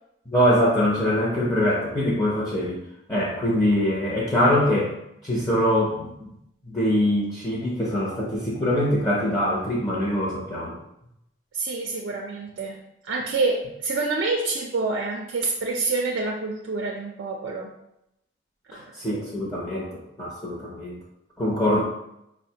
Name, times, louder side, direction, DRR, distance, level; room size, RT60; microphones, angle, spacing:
voice 1, 0.3-2.8 3.1-4.9 5.2-6.3 6.6-10.8 18.7-21.0 21.4-21.8, left 1 dB, 15° left, -6 dB, 0.5 m, -23 dB
voice 2, 11.5-12.8 13.0-17.7 18.7-18.9, right 3 dB, 80° right, -1 dB, 0.4 m, -27 dB
4.9 x 2.1 x 2.7 m, 0.82 s
head